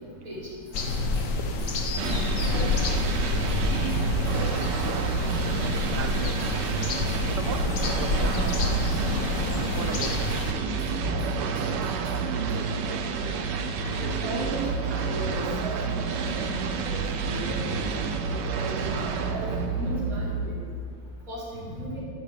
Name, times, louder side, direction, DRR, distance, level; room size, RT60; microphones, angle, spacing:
sound 1, 0.6-3.1 3.5-5.0 5.3-5.5 5.7-6.8 7.0-8.6 8.9-9.1 9.3-10.5 10.8-12.5, equal, 20° left, 3.3 m, -42 dB
sound 2, 0.7-10.5, left 3 dB, 50° left, 1.1 m, -28 dB
sound 3, 2.0-21.0, right 5 dB, 65° right, 1.3 m, -29 dB
voice 1, 6.0-6.6 7.2-8.9 9.7-12.7, right 6 dB, 80° right, 7 dB, 1.9 m, -39 dB
voice 2, 13.8-16.4 16.8-18.0 18.4-20.6 21.3-22.0, equal, 40° right, -9 dB, 4.9 m, -36 dB
12.5 x 7.6 x 8.3 m, 2.1 s
omnidirectional pair, 2.4 m